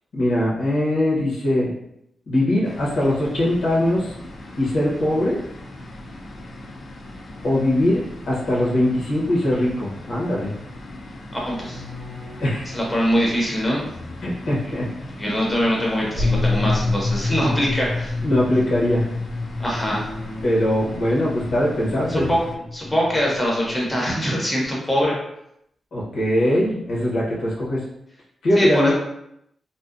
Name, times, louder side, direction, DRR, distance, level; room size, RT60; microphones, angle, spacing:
voice 1, 0.1-1.7 2.3-4.1 4.6-5.4 7.4-10.5 12.4-12.7 14.2-15.1 18.2-19.0 20.4-22.3 25.9-27.8 28.4-28.9, left 1 dB, 75° left, -5 dB, 0.8 m, -21 dB
sound 1, 2.6-22.6, left 1 dB, 55° left, 0.4 m, -39 dB
sound 2, 11.3-12.6 13.8-14.5 16.0-16.6 19.5-20.9 21.3-21.8 22.0-22.5 23.1-23.2 23.5-24.3, left 1 dB, 75° right, 0.5 m, -40 dB
voice 2, 11.5-11.8 12.7-13.8 14.6-14.7 15.2-18.1 19.6-20.1 22.1-22.4 22.7-25.2 28.6-28.9, equal, 10° left, -4 dB, 0.6 m, -22 dB
sound 3, 16.2-24.2, left 3 dB, 25° right, 0.8 m, -27 dB
2.6 x 2.1 x 2.4 m, 0.78 s
wide cardioid pair, 135°, 0 cm